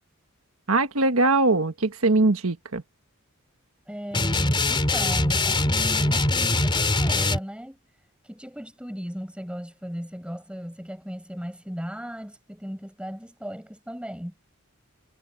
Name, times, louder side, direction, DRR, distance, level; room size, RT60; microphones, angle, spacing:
voice 1, 0.7-2.8, right 2 dB, 80° right, 1.5 m, -21 dB
voice 2, 3.9-14.3, equal, 5° right, 6.7 m, -37 dB
sound 1, 4.1-7.4, left 2 dB, 25° left, 3.4 m, -22 dB
head